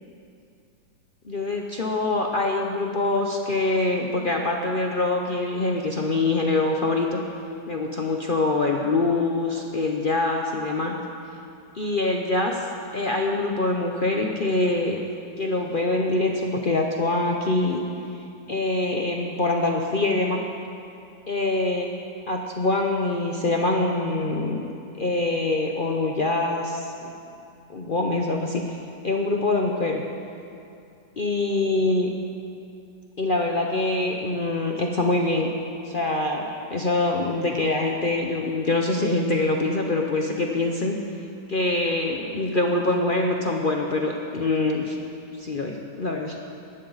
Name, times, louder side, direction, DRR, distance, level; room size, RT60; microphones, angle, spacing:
voice 1, 1.2-7.2 7.7-11.0 11.7-12.7 12.9-15.0 15.4-17.8 18.5-20.4 21.3-21.9 22.3-24.6 24.9-27.1 27.7-28.8 29.0-30.0 31.2-32.1 33.2-35.5 35.8-41.0 41.5-45.0 45.4-46.4, left 2 dB, 50° left, 1 dB, 0.6 m, -24 dB
17.5 x 12.0 x 4.0 m, 2.6 s
omnidirectional pair, 1.9 m